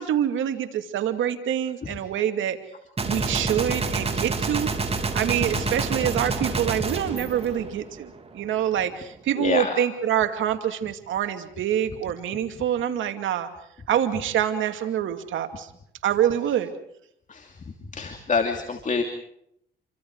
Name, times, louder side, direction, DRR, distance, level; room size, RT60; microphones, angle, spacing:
voice 1, 0.0-2.6 3.0-4.7 5.1-13.5 13.9-15.7 16.0-16.7, right 10 dB, 80° right, 7 dB, 2.4 m, -26 dB
Gunshot gunfire, 3.0-8.2, right 4 dB, 30° right, 3.9 m, -28 dB
voice 2, 9.4-9.7 17.3-17.5 17.9-19.0, left 4 dB, 40° left, 5 dB, 2.8 m, -27 dB
29.5 x 25.0 x 4.8 m, 0.74 s
cardioid pair, 90°, 20 cm